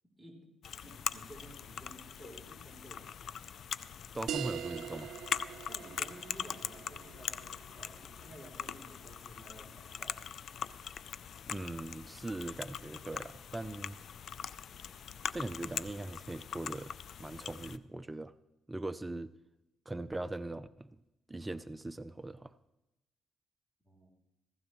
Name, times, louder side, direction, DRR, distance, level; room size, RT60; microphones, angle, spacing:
sound 1, 0.6-17.8, left 8 dB, 60° left, 0.4 m, -42 dB
voice 1, 0.8-3.1 5.7-10.2 23.8-24.1, right 1 dB, ahead, 0 dB, 3.6 m, -54 dB
voice 2, 4.1-5.1 11.5-14.0 15.3-16.9 17.2-18.3 18.7-19.3 19.9-21.0 21.3-22.5, right 2 dB, 15° right, 13 dB, 0.5 m, -40 dB
sound 2, 4.3-9.4, right 10 dB, 75° right, 0.4 m, -44 dB
15.5 x 15.5 x 3.1 m, 0.91 s
cardioid pair, 90°, 0 cm